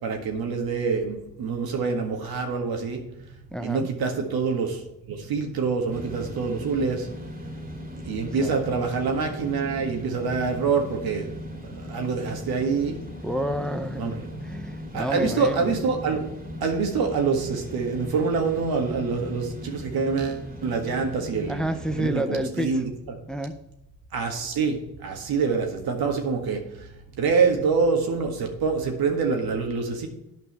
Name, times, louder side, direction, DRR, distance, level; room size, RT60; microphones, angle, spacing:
voice 1, 0.0-3.0 3.6-7.1 8.0-11.3 11.8-13.0 14.0-14.6 14.9-16.3 16.6-21.6 22.0-22.9 24.1-26.9 27.2-30.1, right 5 dB, 75° right, 3 dB, 1.8 m, -26 dB
voice 2, 3.5-3.9 8.4-8.5 13.2-15.8 21.5-22.7 23.3-23.5, equal, ahead, 8 dB, 0.8 m, -29 dB
sound 1, 5.9-22.1, equal, 25° right, 2.4 m, -38 dB
9.3 x 5.5 x 6.8 m, 0.87 s
supercardioid pair, 55°, 37 cm